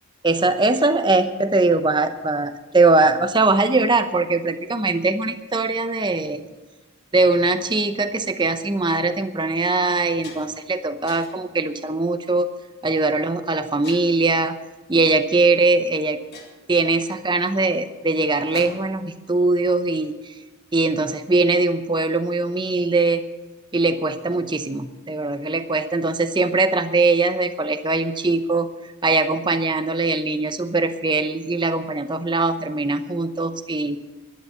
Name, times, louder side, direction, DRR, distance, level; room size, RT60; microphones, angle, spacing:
voice 1, 0.2-6.5 7.1-12.5 12.8-14.6 14.9-16.2 16.7-20.1 20.7-23.2 23.7-28.7 29.0-34.0, right 3 dB, 20° right, 9 dB, 0.8 m, -21 dB
sound 1, 8.8-9.0 9.5-9.6 9.9-10.7 11.1-11.5 12.2-12.5 13.8-14.4 15.5-15.6 15.9-16.0 16.3-19.1, left 3 dB, 50° left, 2.2 m, -43 dB
12.0 x 9.8 x 7.9 m, 1.2 s
head